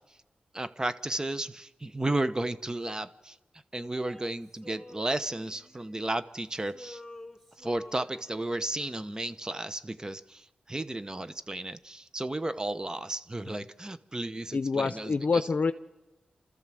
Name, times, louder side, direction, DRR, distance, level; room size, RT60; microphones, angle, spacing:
voice 1, 0.5-3.4 3.7-7.0 7.6-15.5, right 1 dB, 25° right, 1.0 m, -33 dB
Male singing, 3.9-6.3 6.6-8.8, left 2 dB, 5° right, 2.7 m, -50 dB
voice 2, 14.5-15.7, left 4 dB, 60° left, 0.7 m, -26 dB
29.5 x 13.5 x 7.6 m
cardioid pair, 65°, 3 cm